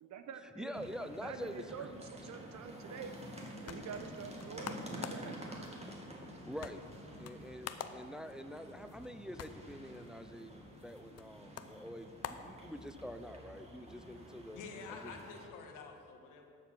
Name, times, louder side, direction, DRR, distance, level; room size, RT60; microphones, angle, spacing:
voice 1, 0.0-3.1 3.6-5.4, right 6 dB, 60° right, 8 dB, 1.1 m, -47 dB
voice 2, 0.6-1.9 6.5-6.8 7.2-14.6 14.9-15.1, equal, ahead, 9 dB, 0.6 m, -46 dB
sound 1, 0.7-15.4, equal, 20° right, 2.2 m, -49 dB
sound 2, 3.7-13.2, left 8 dB, 55° left, 0.8 m, -50 dB
voice 3, 14.6-16.4, left 5 dB, 80° left, 3 dB, 1.6 m, -48 dB
12.5 x 7.3 x 6.2 m, 2.4 s
cardioid pair, 85°, 31 cm